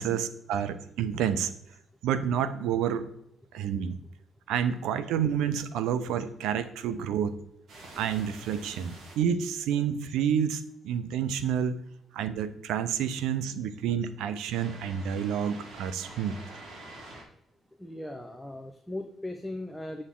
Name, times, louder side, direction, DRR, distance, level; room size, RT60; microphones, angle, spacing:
voice 1, 0.0-1.5 2.0-3.1 3.5-4.0 4.5-7.3 8.0-11.8 12.1-16.4, right 8 dB, 90° right, 12 dB, 0.6 m, -29 dB
sound 1, 7.7-9.1 14.5-17.2, right 2 dB, 60° right, 3.1 m, -47 dB
voice 2, 17.8-20.0, left 1 dB, 5° left, 4 dB, 0.9 m, -38 dB
8.2 x 6.5 x 3.8 m, 0.72 s
cardioid pair, 90°, 0 cm